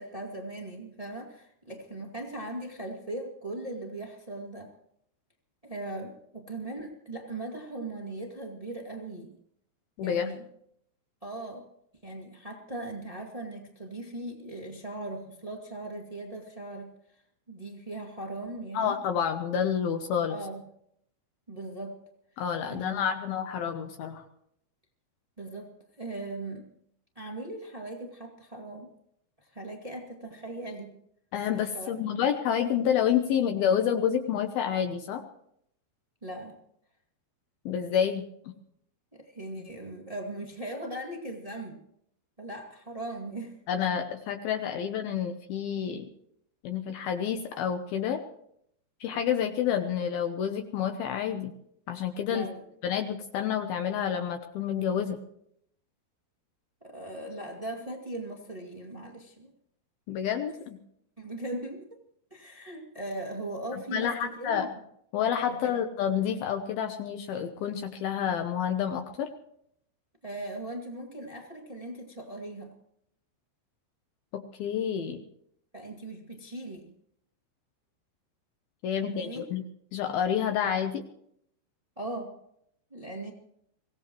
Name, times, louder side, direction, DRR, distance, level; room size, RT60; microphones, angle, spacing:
voice 1, 0.0-4.7 5.6-9.3 10.0-10.4 11.2-11.7 12.0-16.9 17.5-19.0 20.3-20.6 21.5-22.0 22.7-23.2 25.4-26.6 27.1-28.9 29.4-31.0 31.7-32.0 36.2-36.6 39.1-41.8 42.4-43.6 52.3-52.6 56.8-59.5 61.2-61.9 62.3-64.7 65.5-65.7 70.2-72.7 75.7-76.9 79.0-79.4 81.9-82.4 82.9-83.3, right 1 dB, 45° right, 0 dB, 0.4 m, -39 dB
voice 2, 10.0-10.3 18.7-20.4 22.4-24.2 31.3-35.2 37.7-38.2 43.7-46.1 46.6-48.2 49.0-51.5 51.9-52.5 52.8-55.2 60.1-60.8 63.9-64.7 65.1-69.3 74.3-75.2 78.8-79.6 79.9-81.0, left 8 dB, 70° left, 6 dB, 2.5 m, -29 dB
24.0 x 17.0 x 3.1 m, 0.71 s
omnidirectional pair, 5.0 m